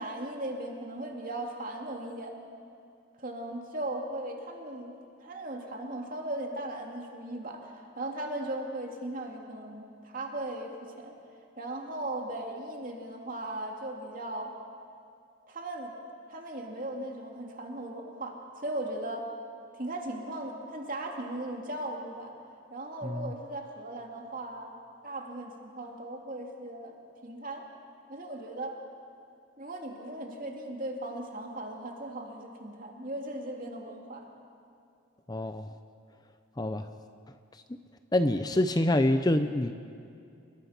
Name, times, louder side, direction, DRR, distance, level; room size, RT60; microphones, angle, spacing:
voice 1, 0.0-2.3 3.2-11.1 11.6-14.5 15.5-15.9 16.3-19.3 19.7-22.3 22.7-24.7 25.0-27.0 27.2-27.6 28.1-28.8 29.6-34.3, right 1 dB, 40° right, 1 dB, 2.9 m, -38 dB
voice 2, 35.3-35.7 36.6-36.9 37.7-37.8 38.1-39.8, left 1 dB, 20° left, 9 dB, 0.6 m, -26 dB
29.5 x 21.5 x 6.0 m, 2.5 s
head